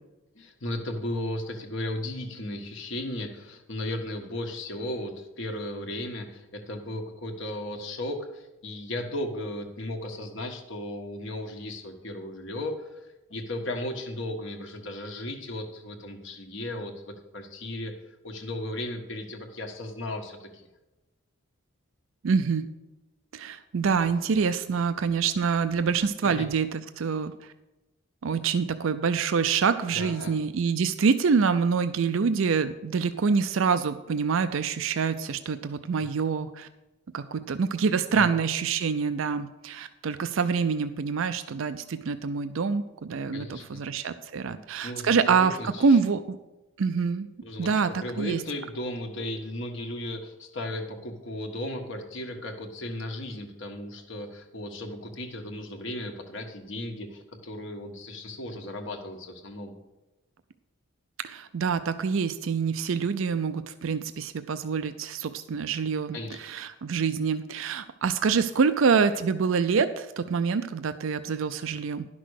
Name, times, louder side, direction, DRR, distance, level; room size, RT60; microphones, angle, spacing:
voice 1, 0.3-13.0 13.3-17.9 18.2-20.7 26.2-26.5 29.9-30.4 38.1-38.4 43.3-43.8 44.5-46.0 47.4-59.7 66.1-66.4, left 1 dB, 65° left, 4 dB, 1.4 m, -35 dB
voice 2, 22.2-22.6 23.3-27.3 28.2-36.7 37.1-46.2 46.8-47.3 47.6-48.4 61.2-72.1, right 5 dB, 75° right, 10 dB, 0.4 m, -26 dB
11.5 x 6.1 x 6.4 m, 1.0 s
head